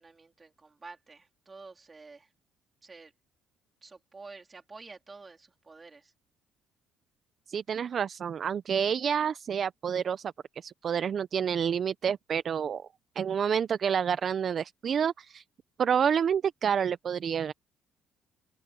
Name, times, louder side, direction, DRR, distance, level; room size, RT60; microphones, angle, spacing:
voice 1, 0.0-2.3 2.8-3.1 3.8-6.1, right 4 dB, 20° right, 3.2 m, -49 dB
voice 2, 7.5-12.9 13.2-15.4 15.8-17.5, right 7 dB, 45° right, 0.5 m, -29 dB
cardioid pair, 125°, 0 cm